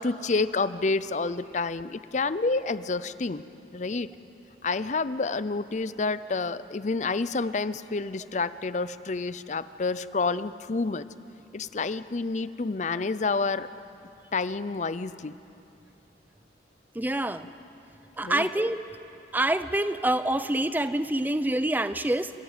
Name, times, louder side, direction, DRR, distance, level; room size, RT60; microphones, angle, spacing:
voice 1, 0.0-3.4 3.7-4.1 4.6-11.0 11.5-13.7 14.3-15.4 18.2-18.5, left 3 dB, 40° left, 15 dB, 0.5 m, -29 dB
voice 2, 16.9-17.5 18.2-18.8 19.3-22.3, right 1 dB, 10° right, 12 dB, 0.6 m, -26 dB
29.0 x 14.5 x 9.0 m, 2.7 s
head